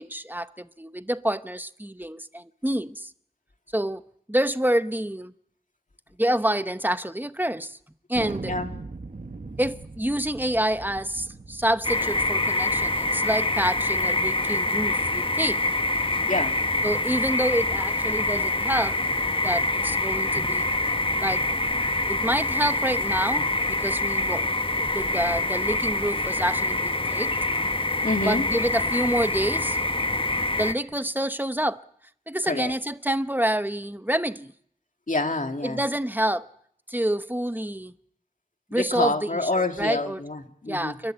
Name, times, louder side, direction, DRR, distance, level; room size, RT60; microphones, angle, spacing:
voice 1, 0.0-3.1 3.7-4.0 4.3-5.3 6.2-7.8 8.1-8.5 9.6-15.6 16.8-19.0 19.4-20.7 21.2-21.4 22.1-27.3 28.3-29.8 30.6-31.8 32.3-34.5 35.6-36.5 36.9-37.9 38.7-40.2 40.7-41.1, right 1 dB, 10° right, 0.9 m, -27 dB
Thunder, 8.1-13.3, right 3 dB, 60° right, 1.3 m, -40 dB
sound 1, 11.8-30.7, left 2 dB, 35° left, 1.0 m, -25 dB
voice 2, 28.0-28.5 32.5-32.7 35.1-35.8 38.7-41.0, left 2 dB, 55° left, 2.2 m, -27 dB
29.5 x 12.5 x 9.0 m
wide cardioid pair, 50°, 16 cm